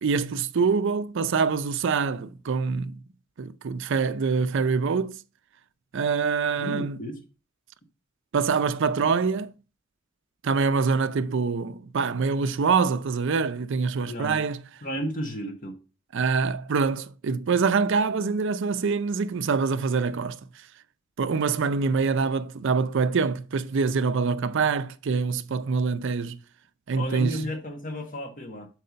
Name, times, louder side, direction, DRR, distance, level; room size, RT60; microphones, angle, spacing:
voice 1, 0.0-3.0 3.4-5.2 5.9-7.0 8.3-9.5 10.4-14.6 16.1-20.4 21.2-26.4 26.9-27.4, right 5 dB, 65° right, 0.5 m, -25 dB
voice 2, 6.6-7.2 14.1-14.4 14.8-15.8 26.9-28.7, equal, 40° left, 1.5 m, -33 dB
6.6 x 4.8 x 5.1 m
head